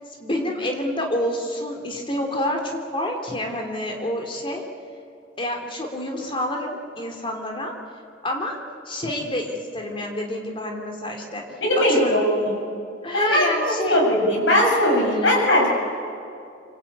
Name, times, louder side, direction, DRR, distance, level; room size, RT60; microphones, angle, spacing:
voice 1, 0.2-4.7 5.4-7.7 8.2-8.6 8.9-11.4 11.9-12.2 13.0-14.0 15.1-15.3, left 1 dB, 30° left, 2 dB, 3.5 m, -28 dB
voice 2, 11.6-12.6 13.1-15.7, left 1 dB, 80° left, 0 dB, 7.6 m, -19 dB
26.0 x 25.5 x 8.9 m, 2.5 s
head